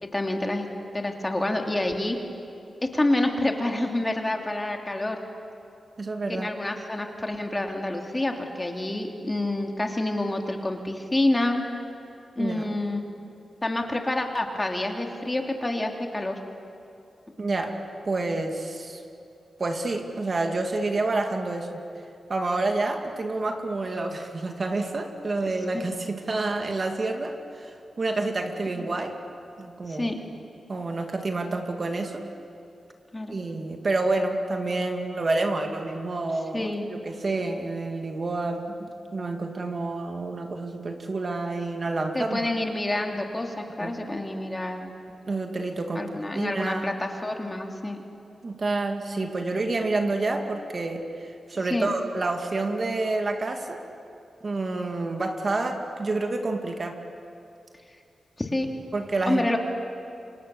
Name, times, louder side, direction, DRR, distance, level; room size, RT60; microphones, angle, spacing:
voice 1, 0.0-0.7 0.9-2.2 2.9-5.2 6.3-11.6 12.4-13.0 13.6-16.4 25.4-25.8 28.7-28.9 29.9-30.2 33.1-33.3 36.5-36.9 42.1-44.9 45.9-48.0 49.2-49.3 51.7-51.9 58.4-58.7 59.3-59.6, left 1 dB, 20° left, 3 dB, 2.9 m, -28 dB
voice 2, 6.0-6.5 12.4-12.7 17.4-17.7 18.1-19.0 19.6-21.8 22.3-29.2 29.6-30.1 30.7-32.2 33.3-42.4 43.8-44.0 45.3-47.0 48.4-53.8 54.4-57.0 58.9-59.5, right 2 dB, 45° right, 4 dB, 2.4 m, -28 dB
29.0 x 25.5 x 7.2 m, 2.7 s
cardioid pair, 80°, 0 cm